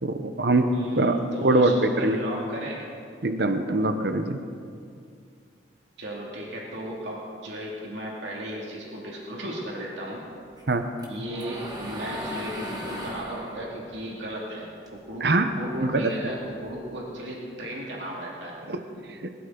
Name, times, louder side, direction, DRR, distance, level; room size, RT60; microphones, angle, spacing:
voice 1, 0.0-0.7 1.0-2.2 3.2-4.4 10.7-10.8 15.2-15.5 15.8-16.1 18.7-18.8 19.2-19.3, right 2 dB, 60° right, 7 dB, 0.9 m, -23 dB
voice 2, 0.7-2.9 6.0-10.2 11.1-18.6, right 1 dB, 80° right, -3 dB, 2.4 m, -35 dB
sound 1, 10.6-15.1 15.5-17.0, left 1 dB, 20° right, 1.7 m, -38 dB
21.0 x 12.5 x 3.9 m, 2.3 s
head